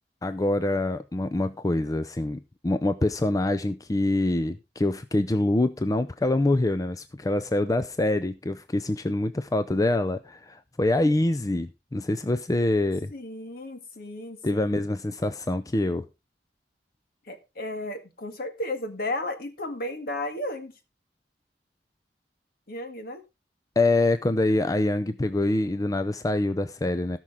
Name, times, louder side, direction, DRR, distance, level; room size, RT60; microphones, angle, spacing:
voice 1, 0.2-13.1 14.4-16.1 23.8-27.2, left 2 dB, 20° left, 0.5 m, -25 dB
voice 2, 13.1-14.8 17.3-20.7 22.7-23.2, left 1 dB, 60° left, 1.9 m, -34 dB
17.5 x 6.1 x 3.6 m
head